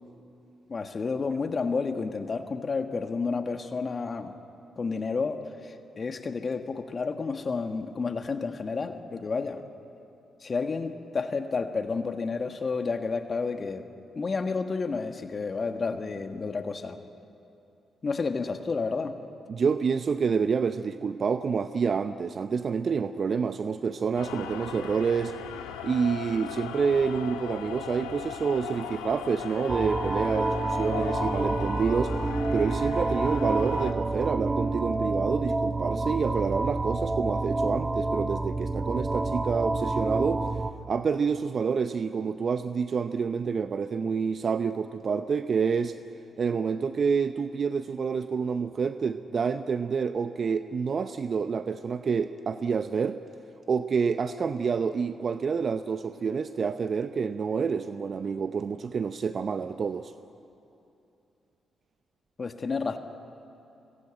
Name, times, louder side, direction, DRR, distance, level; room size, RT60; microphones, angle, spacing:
voice 1, 0.7-4.4 4.8-9.6 10.4-13.8 14.2-17.0 18.0-19.2 62.4-63.0, left 4 dB, 45° left, 7 dB, 1.6 m, -30 dB
voice 2, 19.5-25.3 25.8-32.2 32.5-40.5 40.9-46.0 46.4-53.2 53.7-60.1, right 5 dB, 55° right, 11 dB, 0.7 m, -28 dB
sound 1, 24.1-33.9, left 9 dB, 85° left, 1.4 m, -38 dB
sound 2, 29.7-40.7, right 2 dB, 25° right, 1.4 m, -28 dB
24.0 x 21.5 x 8.9 m, 2.8 s
hypercardioid pair, 40°, 0 cm